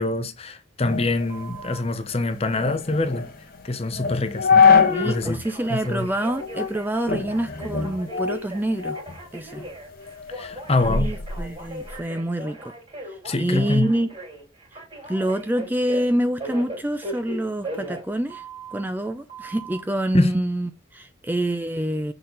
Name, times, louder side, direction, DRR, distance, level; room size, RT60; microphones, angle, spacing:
voice 1, 0.0-3.3 3.6-4.7 5.0-5.4 5.7-6.1 10.3-11.1 13.2-13.9 20.1-20.3, left 2 dB, 30° left, 0.8 m, -24 dB
sound 1, 0.8-5.3 5.7-5.8 6.4-6.8 7.1-9.2 9.6-12.0, left 5 dB, 45° left, 1.1 m, -23 dB
Telephone, 1.3-1.8 4.6-18.8 19.3-19.8, right 2 dB, 25° right, 2.7 m, -38 dB
voice 2, 4.7-9.0 9.3-9.6 10.8-12.7 13.1-14.1 15.1-18.4 18.7-22.1, right 1 dB, 10° right, 0.4 m, -26 dB
6.5 x 4.0 x 3.9 m
head